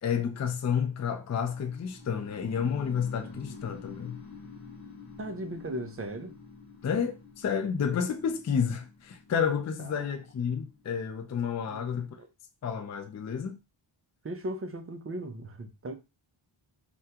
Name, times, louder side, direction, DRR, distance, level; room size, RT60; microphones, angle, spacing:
voice 1, 0.0-4.2 6.8-12.2 12.6-13.6, left 7 dB, 35° left, 0.4 m, -30 dB
sound 1, 1.5-11.4, left 4 dB, 70° left, 1.1 m, -48 dB
voice 2, 5.2-6.4 9.8-10.1 11.7-11.9 12.2-12.3 14.2-15.9, right 1 dB, 30° right, 0.4 m, -37 dB
3.5 x 2.2 x 2.8 m
wide cardioid pair, 115°, 50 cm